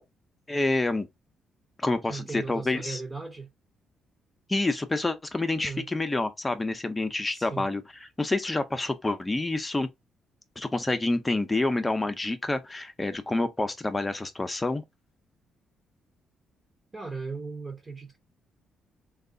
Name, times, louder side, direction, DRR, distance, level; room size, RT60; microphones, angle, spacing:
voice 1, 0.5-1.1 1.8-3.0 4.5-7.8 8.2-9.9 10.6-14.8, left 2 dB, 20° left, 0.7 m, -28 dB
voice 2, 2.1-3.5 5.6-5.9 7.3-7.7 16.9-18.2, right 4 dB, 25° right, 0.9 m, -37 dB
3.2 x 2.4 x 3.8 m
cardioid pair, 90°, 0 cm